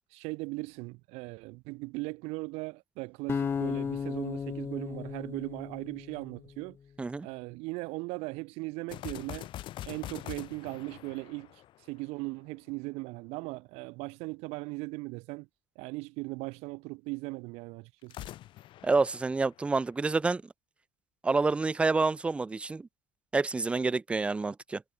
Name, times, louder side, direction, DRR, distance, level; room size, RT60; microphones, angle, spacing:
voice 1, 0.1-6.8 7.2-9.5 9.8-11.6 11.9-15.5 15.8-18.3, right 26 dB, 70° right, 7.1 m, -38 dB
sound 1, 3.3-6.5, left 6 dB, 20° left, 0.7 m, -35 dB
sound 2, 8.9-12.3 18.0-20.1, left 14 dB, 45° left, 4.6 m, -44 dB
voice 2, 18.8-20.4 21.2-22.9 23.3-24.8, right 3 dB, 10° right, 0.5 m, -28 dB
cardioid pair, 150°, 11 cm